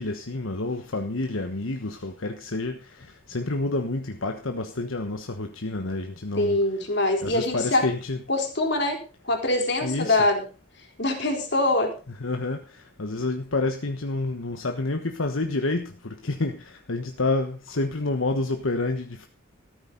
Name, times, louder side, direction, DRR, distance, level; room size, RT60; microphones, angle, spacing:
voice 1, 0.0-6.6 7.2-8.2 9.8-10.2 12.2-19.3, left 2 dB, 80° left, 1.2 m, -29 dB
voice 2, 6.4-7.9 8.3-10.5 11.0-11.9, left 2 dB, 55° left, 3.9 m, -24 dB
14.0 x 13.0 x 4.0 m
head